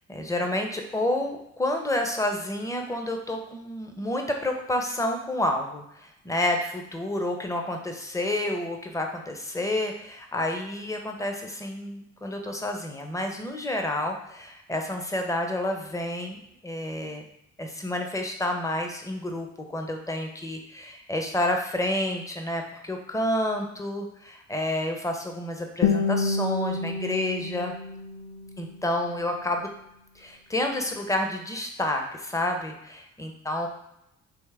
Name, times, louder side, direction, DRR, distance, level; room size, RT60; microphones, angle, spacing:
voice 1, 0.1-17.2 17.6-27.7 28.6-29.7 30.2-33.7, left 1 dB, 10° left, 3 dB, 0.6 m, -29 dB
Guitar, 25.8-28.8, left 5 dB, 55° left, 0.5 m, -28 dB
3.5 x 3.0 x 3.3 m, 0.82 s
cardioid pair, 90°, 30 cm